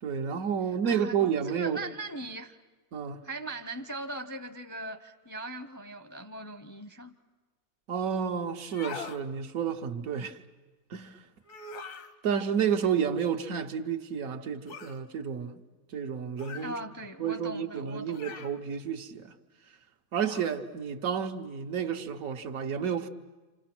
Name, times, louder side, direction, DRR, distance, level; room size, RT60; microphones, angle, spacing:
voice 1, 0.0-1.8 2.9-3.2 7.9-10.4 10.9-11.2 12.2-15.6 15.9-16.8 17.2-19.3 20.1-23.1, right 7 dB, 80° right, 1.4 m, -31 dB
voice 2, 0.8-1.2 1.5-2.6 3.2-7.1 16.6-18.4, right 2 dB, 20° left, 0.5 m, -40 dB
sound 1, 8.6-9.2 11.4-12.1 14.7-15.0 16.4-16.8 18.1-18.6 20.2-20.6, left 5 dB, 75° left, 1.4 m, -42 dB
28.5 x 26.5 x 6.0 m
omnidirectional pair, 1.4 m